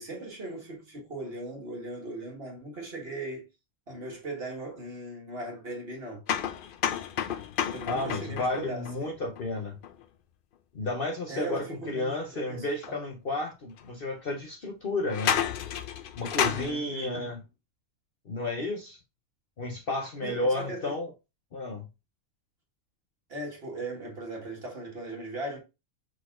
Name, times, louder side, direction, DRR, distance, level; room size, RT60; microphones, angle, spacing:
voice 1, 0.0-3.5 3.9-6.2 7.7-9.3 11.3-13.0 16.5-17.3 20.2-21.0 23.3-25.6, right 2 dB, 45° right, 1.8 m, -38 dB
sound 1, 6.3-10.1 12.8-12.9 13.8-13.9 15.0-16.7, left 9 dB, 85° left, 0.4 m, -31 dB
voice 2, 7.9-9.8 10.7-15.4 16.2-17.4 18.3-19.0 19.6-21.1 21.5-21.9, left 2 dB, 50° left, 0.8 m, -32 dB
4.8 x 3.9 x 2.4 m
omnidirectional pair, 1.5 m